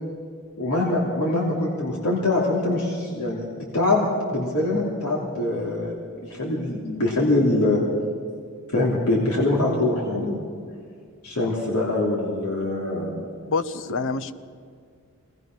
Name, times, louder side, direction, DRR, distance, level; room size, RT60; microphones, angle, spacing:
voice 1, 0.6-3.4 3.7-6.0 6.2-7.8 8.7-10.4 11.2-13.1, left 2 dB, 80° left, -3 dB, 3.0 m, -23 dB
voice 2, 13.2-14.3, left 4 dB, 60° left, 14 dB, 0.8 m, -28 dB
22.5 x 19.0 x 6.1 m, 2.1 s
head